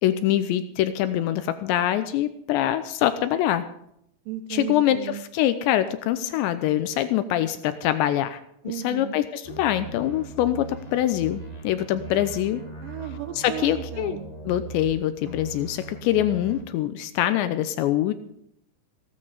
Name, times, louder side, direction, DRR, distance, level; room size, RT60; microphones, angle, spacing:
voice 1, 0.0-3.6 4.5-8.4 8.8-12.6 13.4-14.2 14.5-18.1, left 12 dB, 85° left, 11 dB, 2.9 m, -24 dB
voice 2, 4.3-5.2 8.6-9.2 12.8-14.3, right 11 dB, 85° right, 8 dB, 1.9 m, -35 dB
sound 1, 9.4-14.9 15.2-16.6, right 3 dB, 20° left, 1.0 m, -39 dB
16.0 x 12.5 x 5.0 m, 0.72 s
omnidirectional pair, 5.2 m